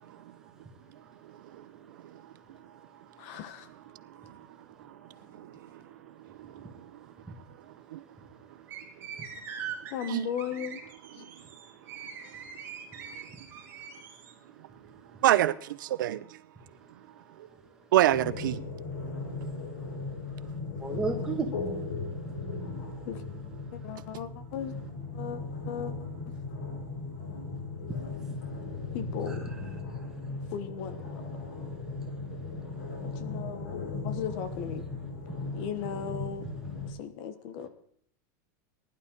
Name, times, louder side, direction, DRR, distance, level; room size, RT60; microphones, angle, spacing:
voice 1, 3.2-3.7 9.9-10.8 11.1-11.3 23.0-23.2 23.7-24.7 25.1-25.4 25.7-25.9 28.9-29.4 30.5-31.2 33.0-34.9 35.5-36.5 36.9-37.7, left 8 dB, 40° left, 1.2 m, -37 dB
sound 1, 8.7-14.3, right 8 dB, 20° right, 2.4 m, -42 dB
voice 2, 15.2-16.2 17.9-18.6, right 13 dB, 80° right, 0.7 m, -25 dB
sound 2, 18.1-36.9, left 3 dB, 75° left, 6.4 m, -37 dB
voice 3, 20.8-21.5 22.2-22.4 22.7-22.8 27.9-28.5 28.8-29.0 29.3-29.6 29.9-30.4 31.6-33.1 35.3-35.6 36.4-36.5, right 4 dB, 5° right, 2.1 m, -38 dB
20.0 x 11.5 x 3.9 m
supercardioid pair, 170°, 11 cm